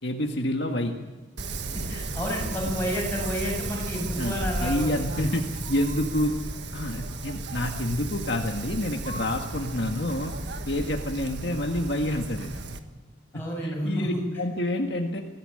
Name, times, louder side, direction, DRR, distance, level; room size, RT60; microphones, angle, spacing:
voice 1, 0.0-0.9 4.2-6.3 6.7-10.3 10.7-12.5 13.3-15.2, left 1 dB, 65° left, 2 dB, 1.8 m, -28 dB
Wind, 1.4-12.8, right 2 dB, 65° right, 1.5 m, -34 dB
voice 2, 1.7-5.3 13.3-14.2, equal, 10° left, -3 dB, 7.4 m, -31 dB
22.0 x 16.0 x 10.0 m, 1.3 s
head